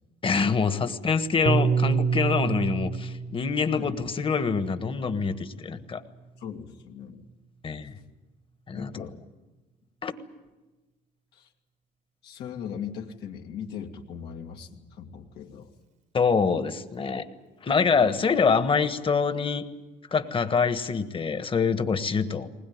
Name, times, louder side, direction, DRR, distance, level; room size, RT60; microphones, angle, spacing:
voice 1, 0.2-6.0 7.6-7.9 8.7-8.9 10.0-10.1 16.1-17.3 17.6-19.6 20.1-22.5, left 5 dB, 30° left, 10 dB, 1.4 m, -25 dB
Piano, 1.5-5.9, right 6 dB, 45° right, 1.2 m, -28 dB
voice 2, 6.4-7.3 8.7-9.2 11.3-11.5 12.2-15.7, left 8 dB, 80° left, 1 dB, 2.2 m, -39 dB
20.5 x 20.0 x 9.5 m, 1.2 s
cardioid pair, 110°, 17 cm